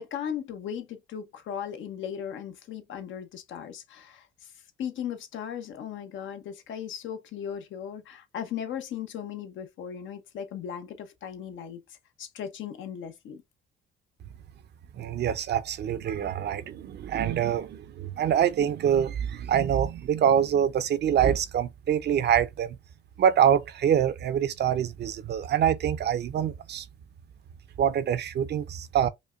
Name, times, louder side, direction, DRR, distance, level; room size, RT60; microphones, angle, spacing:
voice 1, 0.0-4.5 4.8-13.4, left 8 dB, 75° left, 0.8 m, -37 dB
voice 2, 15.0-22.8 23.2-26.8 27.8-29.1, right 9 dB, 60° right, 0.5 m, -25 dB
5.1 x 2.2 x 2.4 m
cardioid pair, 90°, 20 cm